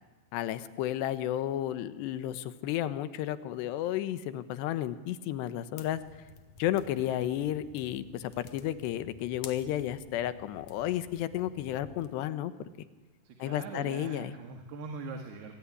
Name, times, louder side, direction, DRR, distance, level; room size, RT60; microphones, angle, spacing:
voice 1, 0.3-6.0 6.6-12.5 13.4-14.3, left 12 dB, 85° left, 13 dB, 3.3 m, -32 dB
sound 1, 5.8-12.1, left 6 dB, 55° left, 2.3 m, -52 dB
voice 2, 13.3-15.6, right 4 dB, 75° right, 4 dB, 4.0 m, -42 dB
26.0 x 23.5 x 9.8 m, 1.2 s
omnidirectional pair, 4.8 m